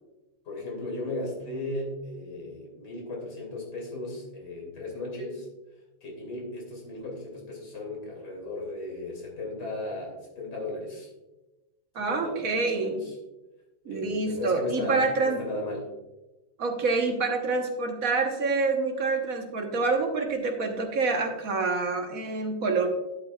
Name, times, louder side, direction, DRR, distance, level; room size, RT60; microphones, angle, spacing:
voice 1, 0.4-5.5 6.0-11.1 12.0-13.1 13.8-15.9, left 2 dB, 55° left, -1 dB, 3.2 m, -36 dB
voice 2, 11.9-13.0 13.8-15.4 16.6-22.9, right 3 dB, 50° right, 3 dB, 1.4 m, -27 dB
11.5 x 8.4 x 2.4 m, 1.0 s
omnidirectional pair, 2.2 m